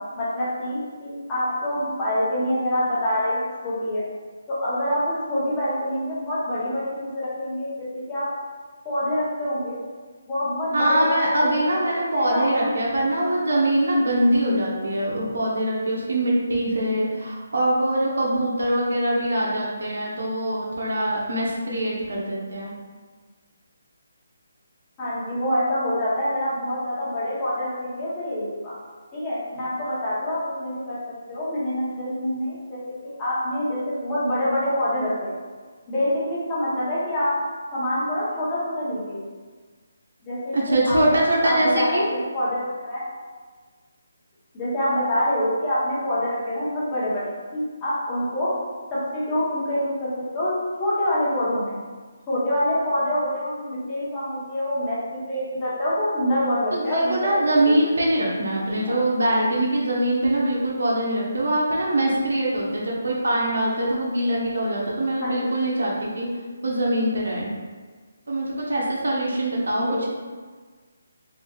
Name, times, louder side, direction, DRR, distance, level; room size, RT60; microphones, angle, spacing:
voice 1, 0.2-4.0 4.5-8.3 8.8-9.8 10.3-11.6 12.1-12.7 13.2-13.3 25.0-28.7 29.1-31.0 31.3-35.3 35.9-37.3 37.7-39.2 40.2-41.2 41.4-42.0 42.3-43.0 44.5-48.5 48.9-50.5 50.8-51.8 52.3-57.4 57.8-57.9 58.8-59.0 65.2-65.5 69.8-70.1, left 1 dB, 10° left, -11 dB, 0.9 m, -26 dB
voice 2, 10.7-22.7 40.5-42.1 56.7-66.3 66.6-67.5 68.3-70.1, right 1 dB, 75° right, -4 dB, 1.0 m, -23 dB
4.1 x 3.6 x 2.4 m, 1.4 s
hypercardioid pair, 180°, 0 cm